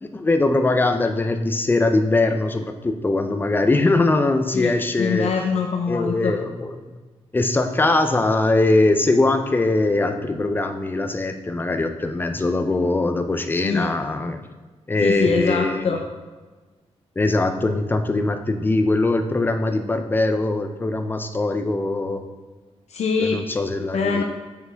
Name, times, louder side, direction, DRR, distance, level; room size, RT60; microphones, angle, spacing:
voice 1, 0.0-5.3 5.9-7.0 7.3-14.4 14.9-16.0 17.2-22.2 23.2-24.2, left 2 dB, 15° left, 7 dB, 0.4 m, -21 dB
voice 2, 5.0-6.3 13.6-13.9 15.0-16.0 22.9-23.4 23.9-24.2, left 5 dB, 75° left, 2 dB, 0.6 m, -23 dB
6.8 x 6.7 x 3.4 m, 1.3 s
wide cardioid pair, 170°, 11 cm